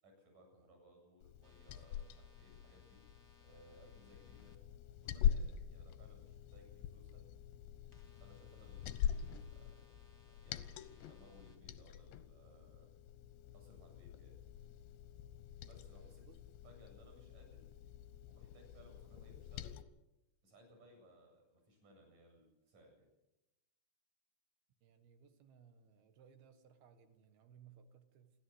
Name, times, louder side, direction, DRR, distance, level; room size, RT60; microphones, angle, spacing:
voice 1, 0.0-3.0 3.4-4.6 5.0-7.2 8.2-9.7 10.3-13.0 13.5-14.4 15.6-16.2 16.6-17.7 18.3-19.8 20.4-23.1, equal, 50° right, 2 dB, 9.6 m, -63 dB
Liquid, 1.2-19.8, left 10 dB, 90° left, 3.1 m, -44 dB
sound 1, 1.4-4.6 7.9-11.6, left 2 dB, 10° left, 1.5 m, -70 dB
voice 2, 16.0-16.4 24.8-28.3, right 7 dB, 70° right, 8 dB, 3.5 m, -63 dB
29.0 x 12.0 x 7.9 m, 0.96 s
omnidirectional pair, 4.8 m